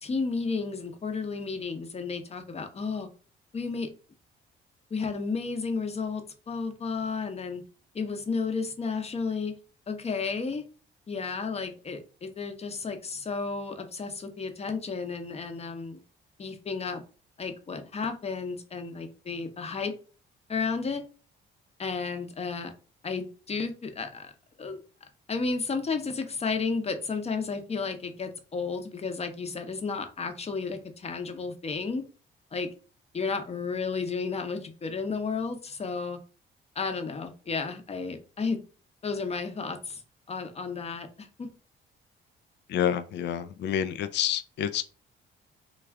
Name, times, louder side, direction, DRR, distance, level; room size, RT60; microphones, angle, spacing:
voice 1, 0.0-3.1 3.5-3.9 4.9-7.6 7.9-9.5 9.9-10.6 11.1-16.0 16.4-17.0 17.4-19.9 20.5-21.0 21.8-22.7 23.0-24.3 24.6-24.8 25.3-32.0 32.5-32.7 33.1-36.2 36.7-38.6 39.0-40.0 40.3-41.5, left 4 dB, 30° left, 0.7 m, -32 dB
voice 2, 42.7-44.8, left 9 dB, 60° left, 0.4 m, -28 dB
3.3 x 2.4 x 3.5 m
cardioid pair, 90°, 20 cm